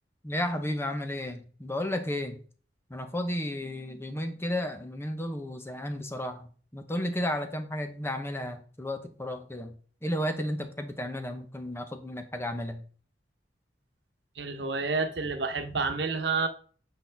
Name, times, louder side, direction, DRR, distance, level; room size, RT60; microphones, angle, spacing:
voice 1, 0.2-2.4 2.9-9.8 10.0-12.8, left 1 dB, 15° left, 1.0 m, -33 dB
voice 2, 14.4-16.5, right 4 dB, 75° right, 1.1 m, -29 dB
8.3 x 5.6 x 3.5 m
head